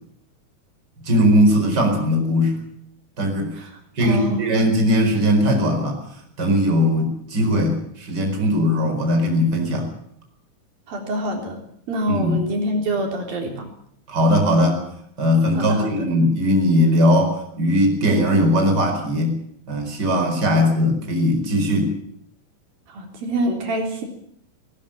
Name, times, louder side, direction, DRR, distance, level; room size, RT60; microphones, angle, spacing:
voice 1, 1.0-2.6 3.2-3.6 3.9-6.0 6.4-9.9 12.1-12.4 14.1-14.8 15.2-19.4 19.7-21.9, equal, 25° right, 4 dB, 5.0 m, -19 dB
voice 2, 4.0-4.6 10.9-11.6 11.9-13.7 15.6-16.1 20.5-20.6 22.9-24.1, right 1 dB, 75° right, 2 dB, 5.4 m, -26 dB
19.5 x 19.0 x 8.8 m, 0.67 s
omnidirectional pair, 4.2 m